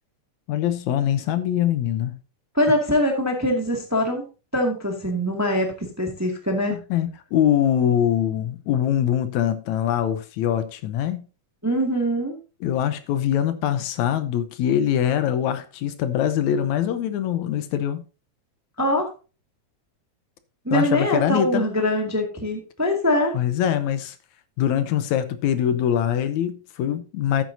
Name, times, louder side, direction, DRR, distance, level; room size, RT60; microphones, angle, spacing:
voice 1, 0.5-2.2 6.7-11.3 12.6-18.0 20.7-21.7 23.3-24.2 24.6-27.4, left 10 dB, 80° left, 2.0 m, -23 dB
voice 2, 2.5-4.2 4.5-6.7 11.6-12.4 18.8-19.1 20.6-23.3, equal, 10° right, 1.2 m, -23 dB
12.5 x 9.0 x 2.7 m
omnidirectional pair, 3.5 m